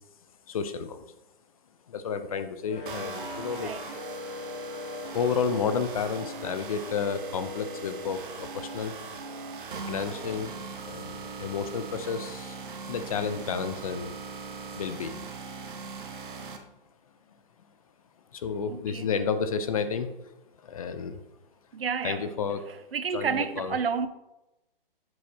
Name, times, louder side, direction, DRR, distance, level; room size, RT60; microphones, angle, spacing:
voice 1, 0.5-1.0 1.9-3.7 5.1-9.0 9.9-10.5 10.9-12.6 12.9-14.1 14.8-15.2 18.3-20.1 20.6-21.2 22.0-22.7 23.1-23.8, left 6 dB, 40° left, 0.5 m, -31 dB
sound 1, 2.6-15.4, left 3 dB, 60° left, 2.1 m, -49 dB
sound 2, 2.9-16.6, right 3 dB, 60° right, 1.0 m, -39 dB
voice 2, 3.6-3.9 18.7-19.1 21.7-22.3 22.9-24.1, right 6 dB, 85° right, 0.7 m, -30 dB
7.6 x 6.4 x 2.8 m
hypercardioid pair, 150°, 29 cm